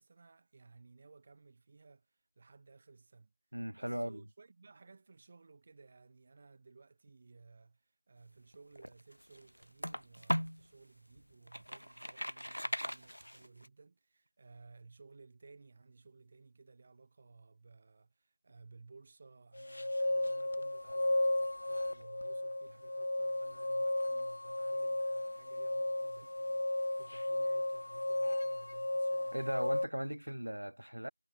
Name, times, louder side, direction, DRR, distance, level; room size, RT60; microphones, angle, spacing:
voice 1, 0.0-3.3 3.8-29.6, right 4 dB, 20° right, 6.5 m, -59 dB
voice 2, 3.5-4.2 29.3-31.1, right 1 dB, 75° right, 3.2 m, -38 dB
sound 1, 8.5-10.7 11.2-13.7, equal, 90° left, 1.5 m, -38 dB
sound 2, 19.5-29.9, left 1 dB, 50° left, 0.4 m, -34 dB
figure-of-eight pair, 170°, 0 cm